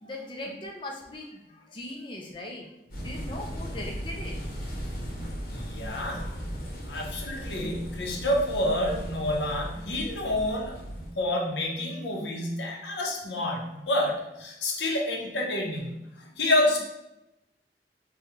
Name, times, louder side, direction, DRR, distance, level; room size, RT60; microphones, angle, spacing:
voice 1, 0.0-2.7 3.0-4.4, left 1 dB, 30° left, -1 dB, 0.4 m, -39 dB
sound 1, 2.9-11.1, equal, 55° left, 0.9 m, -37 dB
voice 2, 5.5-16.8, left 1 dB, 85° left, 0 dB, 0.8 m, -29 dB
4.7 x 2.2 x 3.0 m, 0.91 s
head